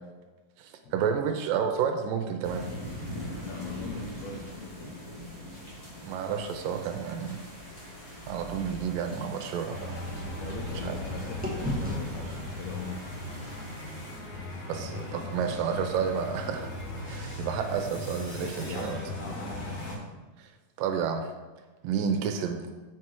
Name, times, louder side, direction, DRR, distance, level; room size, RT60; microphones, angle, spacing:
voice 1, 0.6-2.7 6.0-7.4 8.3-10.0 10.8-11.0 14.7-16.7 17.1-19.0 20.8-21.3 21.8-22.7, right 7 dB, 80° right, 5 dB, 2.2 m, -30 dB
sound 1, 2.4-14.2, left 1 dB, 20° left, 2.1 m, -42 dB
voice 2, 3.4-4.9 10.4-13.2 18.4-19.6, left 4 dB, 85° left, 0 dB, 1.5 m, -41 dB
sound 2, 8.7-11.0 11.4-15.4, left 1 dB, 10° right, 0.4 m, -39 dB
sound 3, 9.7-20.0, left 1 dB, 60° left, 3.6 m, -38 dB
8.1 x 6.0 x 4.6 m, 1.3 s
omnidirectional pair, 4.2 m